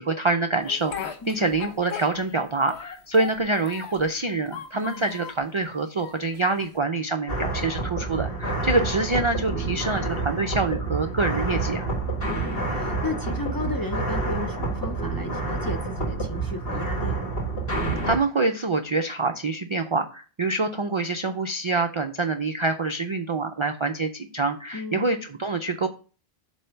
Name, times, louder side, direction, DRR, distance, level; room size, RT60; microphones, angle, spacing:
voice 1, 0.0-11.9 18.0-25.9, right 3 dB, 45° right, 0.4 m, -26 dB
Speech, 0.6-2.4 2.7-4.1 4.5-5.4 6.0-6.8, left 8 dB, 85° left, 1.1 m, -38 dB
voice 2, 4.7-5.1 12.2-17.2 24.7-25.0, left 3 dB, 30° left, 0.5 m, -34 dB
sound 1, 7.3-18.2, right 3 dB, 60° left, 1.7 m, -28 dB
7.7 x 2.7 x 5.6 m
omnidirectional pair, 1.1 m